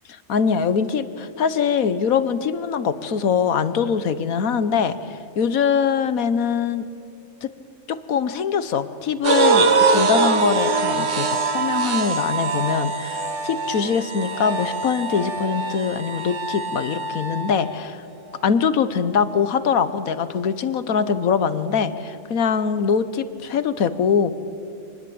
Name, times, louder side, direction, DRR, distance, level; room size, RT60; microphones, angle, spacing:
voice 1, 0.3-6.9 7.4-7.5 7.9-18.0 18.4-24.3, left 6 dB, 70° left, 13 dB, 1.4 m, -23 dB
sound 1, 9.2-17.6, right 4 dB, 55° right, 1.5 m, -23 dB
25.5 x 19.5 x 8.6 m, 2.5 s
omnidirectional pair, 1.5 m